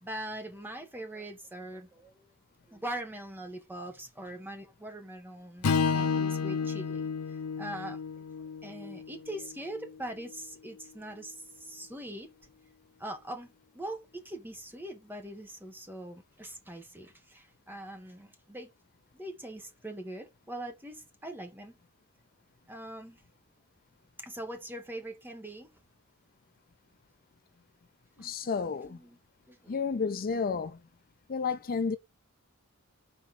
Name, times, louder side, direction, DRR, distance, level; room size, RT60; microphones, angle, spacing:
voice 1, 0.0-2.3 2.7-7.0 7.3-8.0 8.6-12.3 13.0-18.7 19.1-21.8 22.7-23.2 24.2-25.7 28.2-29.2 29.5-29.8, right 1 dB, 10° right, 1.5 m, -42 dB
Strum, 5.6-10.0, left 5 dB, 90° left, 0.6 m, -31 dB
voice 2, 28.2-29.0 29.7-30.8 31.3-32.0, left 5 dB, 40° left, 0.5 m, -31 dB
6.2 x 4.3 x 4.3 m
head